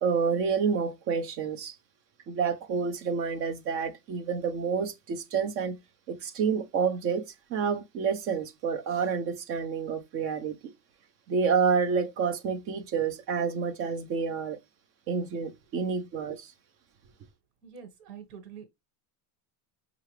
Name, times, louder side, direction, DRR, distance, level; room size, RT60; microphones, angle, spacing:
voice 1, 0.0-1.8 2.3-5.8 6.1-10.6 11.3-14.6 15.1-16.5, right 6 dB, 30° right, 0.4 m, -29 dB
voice 2, 17.6-18.6, right 7 dB, 80° right, 1.4 m, -46 dB
5.6 x 2.4 x 3.1 m
cardioid pair, 165°, 46 cm